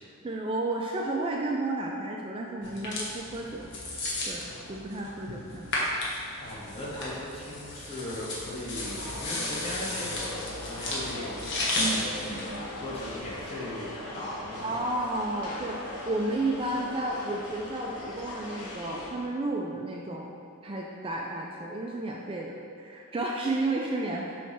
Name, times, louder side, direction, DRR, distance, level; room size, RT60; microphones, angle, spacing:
voice 1, 0.2-3.7 4.3-5.7 6.1-6.2 11.8-12.0 12.3-12.7 14.6-20.3 20.6-24.4, right 2 dB, 25° right, -1 dB, 0.3 m, -32 dB
sound 1, 2.6-13.4, left 1 dB, 50° left, 1.2 m, -34 dB
voice 2, 6.4-12.4 12.7-14.8, left 1 dB, 25° left, -7 dB, 1.3 m, -38 dB
sound 2, 8.7-19.1, left 2 dB, 80° left, 1.0 m, -40 dB
6.6 x 3.2 x 5.7 m, 2.5 s
head